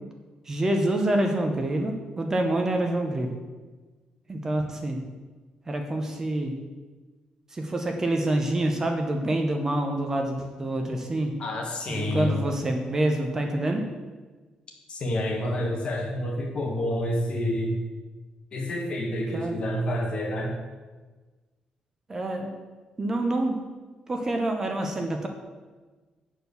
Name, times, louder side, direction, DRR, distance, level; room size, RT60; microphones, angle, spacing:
voice 1, 0.5-3.3 4.3-5.0 5.7-6.6 7.5-11.3 11.9-13.9 19.3-19.5 22.1-22.5 23.0-23.6 24.1-25.3, right 1 dB, 20° right, 3 dB, 0.8 m, -26 dB
voice 2, 11.4-12.4 14.9-17.8 18.5-20.6, left 1 dB, 45° left, 0 dB, 1.6 m, -28 dB
8.6 x 4.5 x 6.9 m, 1.3 s
wide cardioid pair, 165°, 2 cm